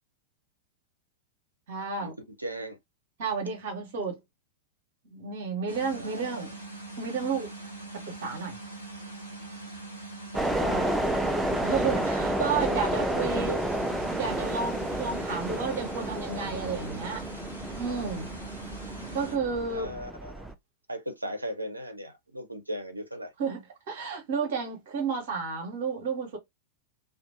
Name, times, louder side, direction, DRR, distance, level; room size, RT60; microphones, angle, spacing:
voice 1, 1.7-2.1 3.2-4.2 5.0-6.6 7.0-7.5 7.9-8.6 10.7-10.9 11.6-13.6 14.1-17.2 17.8-18.3 19.1-19.9 23.4-26.4, right 5 dB, 55° right, 1.0 m, -32 dB
voice 2, 2.4-2.8 5.9-6.5 10.3-11.1 13.3-13.6 19.7-20.5 20.9-23.3, equal, 85° right, 0.5 m, -38 dB
sound 1, 5.7-19.4, right 2 dB, 90° left, 1.0 m, -42 dB
sound 2, 10.3-20.5, right 1 dB, 5° right, 0.3 m, -31 dB
2.5 x 2.3 x 2.4 m
figure-of-eight pair, 95°, 0 cm